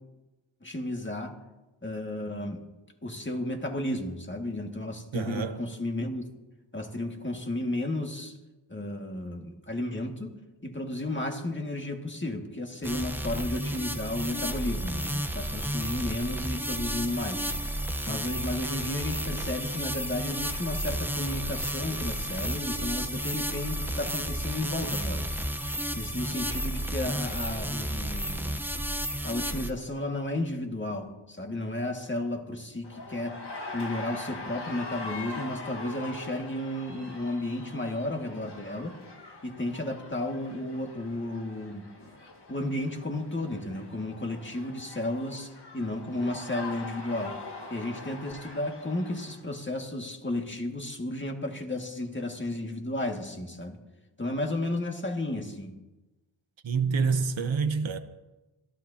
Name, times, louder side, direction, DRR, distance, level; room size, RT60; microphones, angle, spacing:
voice 1, 0.6-1.4 1.8-2.6 3.0-6.3 6.7-8.3 8.7-17.5 18.1-25.4 25.9-28.5 29.2-33.4 33.7-39.0 39.4-41.8 42.5-47.4 47.7-53.8 54.2-55.7, left 1 dB, 20° left, 2.1 m, -33 dB
voice 2, 5.1-5.6 56.6-58.0, right 5 dB, 65° right, 1.0 m, -27 dB
sound 1, 12.8-29.7, right 1 dB, 5° right, 0.9 m, -32 dB
sound 2, 32.8-49.4, left 3 dB, 55° left, 1.7 m, -43 dB
27.0 x 12.5 x 2.9 m
cardioid pair, 40°, 50 cm